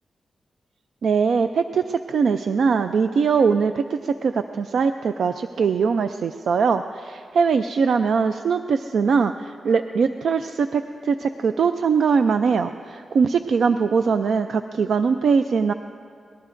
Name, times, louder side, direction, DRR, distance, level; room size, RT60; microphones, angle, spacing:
voice 1, 1.0-15.7, right 5 dB, 70° right, 9 dB, 0.3 m, -21 dB
25.0 x 18.5 x 2.5 m, 2.5 s
wide cardioid pair, 165°, 0 cm